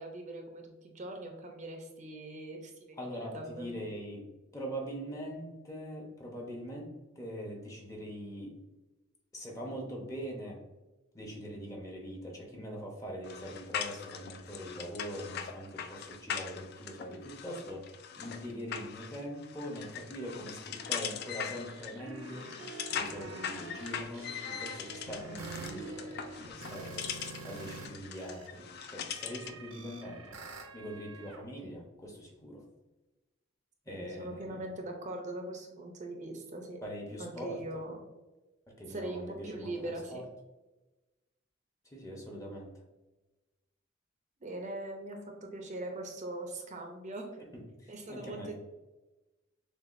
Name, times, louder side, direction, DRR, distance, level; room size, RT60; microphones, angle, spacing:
voice 1, 0.0-3.0 3.3-3.7 33.9-36.8 37.2-38.0 38.9-40.2 44.4-47.3 47.9-48.5, right 1 dB, 35° right, 2 dB, 0.6 m, -41 dB
voice 2, 3.0-4.2 4.5-6.9 7.2-8.5 9.3-10.6 11.1-22.5 22.9-30.4 30.7-32.6 33.9-34.6 36.8-37.8 38.8-40.2 41.9-42.7 47.4-48.5, equal, 15° left, -1 dB, 0.8 m, -42 dB
sound 1, 13.2-29.6, left 8 dB, 50° left, 0.3 m, -41 dB
sound 2, 21.7-27.9 28.2-31.4, right 3 dB, 80° right, 0.7 m, -46 dB
6.7 x 2.4 x 2.5 m, 1.1 s
head